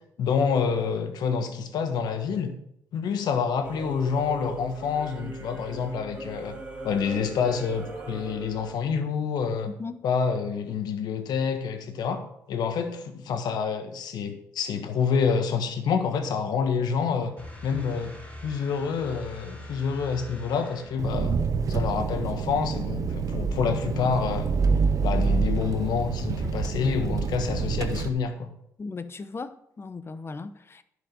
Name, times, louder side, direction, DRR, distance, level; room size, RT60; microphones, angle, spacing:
voice 1, 0.2-2.5 2.9-6.6 6.8-9.7 10.0-17.3 17.6-18.1 18.4-21.4 21.7-24.5 25.0-28.5, left 6 dB, 70° left, 7 dB, 1.4 m, -27 dB
Singing / Musical instrument, 3.6-8.7, right 3 dB, 20° right, 2.9 m, -40 dB
sound 1, 17.4-21.3, left 1 dB, 20° left, 4.1 m, -43 dB
Engine, 21.0-28.1, right 5 dB, 50° right, 0.9 m, -27 dB
voice 2, 28.8-30.8, left 4 dB, 35° left, 12 dB, 0.9 m, -37 dB
11.0 x 5.3 x 6.8 m, 0.76 s
supercardioid pair, 55°, 7 cm